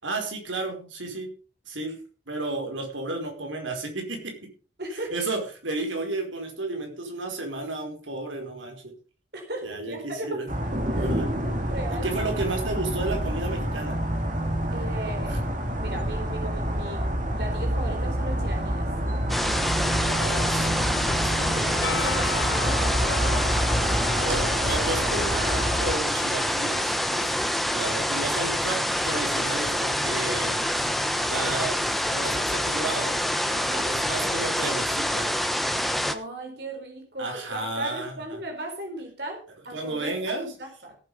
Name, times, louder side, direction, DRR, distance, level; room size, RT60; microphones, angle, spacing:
voice 1, 0.0-1.3 1.7-2.0 2.3-4.5 4.9-8.9 9.6-10.5 10.9-11.3 11.9-14.0 15.3-15.4 20.0-22.1 24.2-27.3 27.7-30.6 31.2-33.2 33.8-35.3 37.2-38.4 39.7-40.5, right 2 dB, 85° right, 3 dB, 5.0 m, -33 dB
voice 2, 4.8-5.1 9.3-10.4 10.9-11.1 11.6-12.1 14.7-15.5 15.8-17.1 17.4-18.9 21.0-24.3 33.5-33.9 35.8-40.9, right 1 dB, 55° right, 3 dB, 4.1 m, -37 dB
sound 1, 10.5-25.9, equal, 40° right, 2.3 m, -28 dB
sound 2, 19.3-36.1, equal, ahead, 1.1 m, -26 dB
Percussion, 21.8-25.7, left 5 dB, 75° left, 1.5 m, -36 dB
17.0 x 8.4 x 5.5 m, 0.38 s
head